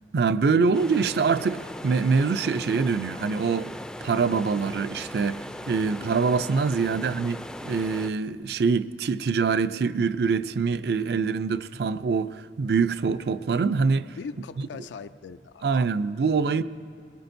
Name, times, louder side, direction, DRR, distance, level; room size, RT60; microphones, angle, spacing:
voice 1, 0.1-3.7 4.0-7.4 7.6-14.1 15.6-16.6, right 5 dB, 65° right, 0.4 m, -24 dB
sound 1, 0.7-8.1, left 1 dB, 5° left, 0.3 m, -39 dB
voice 2, 14.2-16.0, left 5 dB, 90° left, 0.4 m, -41 dB
22.0 x 21.5 x 2.6 m
head